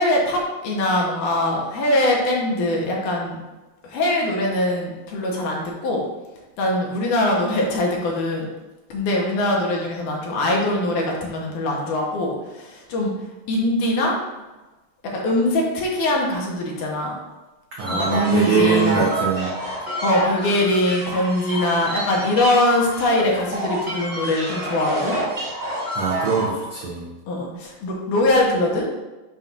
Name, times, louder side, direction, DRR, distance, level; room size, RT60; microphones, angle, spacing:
voice 1, 0.0-3.4 3.8-6.0 6.6-8.5 8.9-13.1 13.5-14.2 15.1-17.2 17.9-19.1 20.0-25.2 27.3-28.9, left 1 dB, 70° left, -1 dB, 2.2 m, -22 dB
sound 1, 17.8-26.5, right 1 dB, 30° right, 1.3 m, -28 dB
voice 2, 17.8-19.5 25.9-27.1, right 5 dB, 85° right, -7 dB, 1.2 m, -22 dB
7.1 x 2.6 x 5.7 m, 1.1 s
omnidirectional pair, 4.1 m